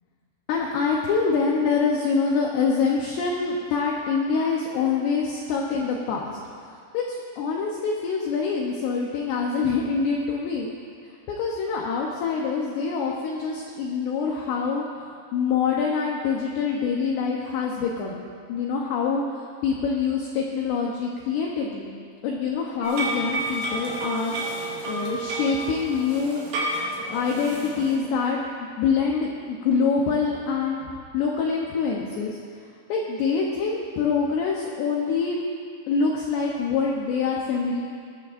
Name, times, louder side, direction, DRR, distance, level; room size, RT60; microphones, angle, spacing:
voice 1, 0.5-6.4 6.7-10.7 11.3-18.2 18.5-21.9 22.2-24.4 24.9-26.4 27.1-28.4 28.8-30.9 31.1-32.4 32.9-35.4 35.9-37.9, left 5 dB, 80° left, -1 dB, 2.5 m, -25 dB
sound 1, 22.8-28.0, right 2 dB, 80° right, 4.7 m, -30 dB
20.5 x 12.5 x 2.5 m, 2.2 s
omnidirectional pair, 5.8 m